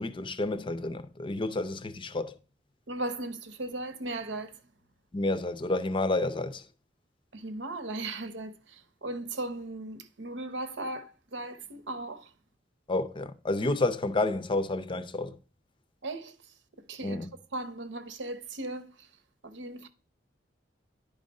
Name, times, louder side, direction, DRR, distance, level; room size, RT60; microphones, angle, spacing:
voice 1, 0.0-2.3 5.1-6.6 12.9-15.4 17.0-17.3, left 2 dB, 30° left, 0.6 m, -30 dB
voice 2, 2.9-4.5 7.3-12.3 16.0-16.3 16.8-17.2 17.5-19.1 19.4-19.9, right 2 dB, 75° right, 0.9 m, -37 dB
10.5 x 3.7 x 5.3 m
head